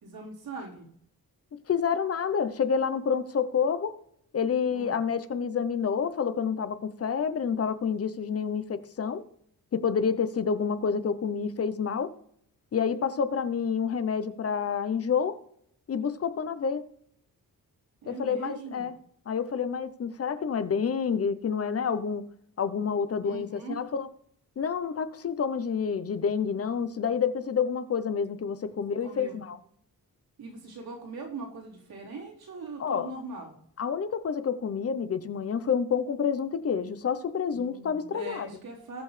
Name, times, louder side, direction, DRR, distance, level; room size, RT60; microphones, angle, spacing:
voice 1, 0.0-0.9 4.7-5.0 18.0-18.9 23.2-23.8 29.0-29.4 30.4-33.5 37.5-39.0, right 3 dB, 85° right, -3 dB, 4.1 m, -41 dB
voice 2, 1.7-4.0 4.3-9.2 9.7-12.1 12.7-15.4 15.9-16.9 18.1-19.0 19.3-22.3 22.6-24.1 24.6-29.6 32.8-33.1 33.8-38.5, left 6 dB, 40° left, 12 dB, 0.8 m, -28 dB
20.0 x 6.8 x 3.3 m, 0.68 s
wide cardioid pair, 170°, 36 cm